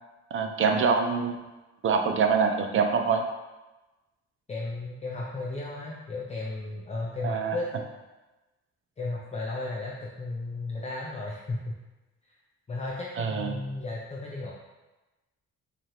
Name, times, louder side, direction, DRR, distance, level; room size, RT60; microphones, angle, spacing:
voice 1, 0.3-1.4 1.8-3.2 7.2-7.6 13.2-13.6, right 5 dB, 45° right, 5 dB, 0.5 m, -25 dB
voice 2, 4.5-7.7 9.0-11.8 12.3-12.4 12.7-14.5, left 2 dB, 20° left, -3 dB, 0.5 m, -34 dB
4.7 x 2.4 x 2.9 m, 1.1 s
cardioid pair, 90°, 30 cm